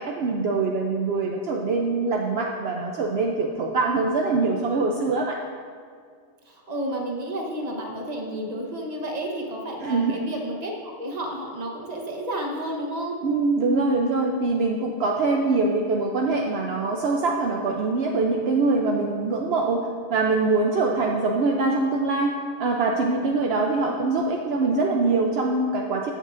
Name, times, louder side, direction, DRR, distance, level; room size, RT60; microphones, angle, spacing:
voice 1, 0.0-5.4 9.8-10.2 13.2-26.1, right 3 dB, 65° right, 1 dB, 0.9 m, -23 dB
voice 2, 6.4-13.2 23.5-23.7 24.1-24.3, right 1 dB, 35° right, 0 dB, 1.2 m, -31 dB
15.0 x 6.5 x 2.5 m, 2.1 s
omnidirectional pair, 1.2 m